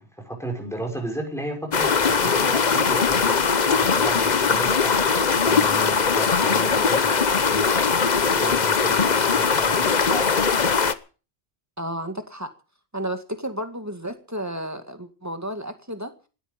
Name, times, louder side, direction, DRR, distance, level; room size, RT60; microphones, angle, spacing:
voice 1, 0.0-1.9 2.2-3.4 3.7-5.1 5.4-7.8 8.3-10.6, right 1 dB, 5° left, 1 dB, 5.8 m, -34 dB
sound 1, 1.7-10.9, left 5 dB, 45° left, 1.0 m, -20 dB
voice 2, 11.8-12.5 12.9-16.1, right 1 dB, 15° right, 7 dB, 2.1 m, -32 dB
19.0 x 13.5 x 5.4 m, 0.37 s
omnidirectional pair, 1.1 m